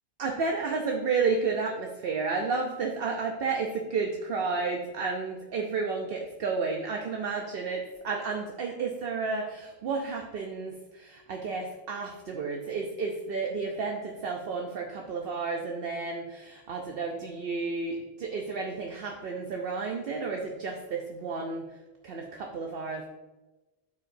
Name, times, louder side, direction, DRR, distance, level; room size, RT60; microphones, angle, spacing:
voice 1, 0.2-21.8 22.0-23.1, right 4 dB, 65° right, 1 dB, 0.9 m, -32 dB
13.0 x 4.7 x 2.6 m, 1.1 s
omnidirectional pair, 1.1 m